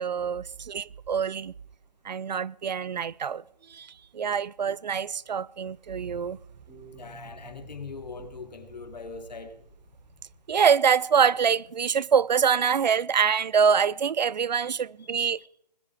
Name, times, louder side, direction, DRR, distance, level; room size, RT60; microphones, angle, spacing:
voice 1, 0.0-1.5 2.0-3.4 3.7-6.4 10.5-15.4, right 7 dB, 90° right, 0.6 m, -25 dB
sound 1, 5.9-10.6, right 2 dB, 15° right, 6.8 m, -50 dB
voice 2, 7.0-9.5 14.6-14.7 15.0-15.5, left 4 dB, 80° left, 2.7 m, -42 dB
20.5 x 12.5 x 4.8 m
hypercardioid pair, 170°, 21 cm